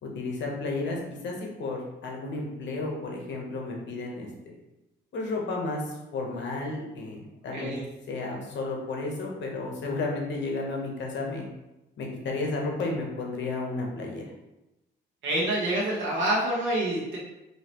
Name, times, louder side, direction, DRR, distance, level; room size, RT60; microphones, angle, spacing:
voice 1, 0.0-4.5 5.1-7.7 8.1-11.4 12.0-14.2, left 3 dB, 65° left, 0 dB, 1.0 m, -32 dB
voice 2, 7.5-7.8 15.2-17.2, right 1 dB, 80° right, -5 dB, 1.2 m, -27 dB
5.5 x 2.8 x 3.0 m, 0.96 s
cardioid pair, 90°, 20 cm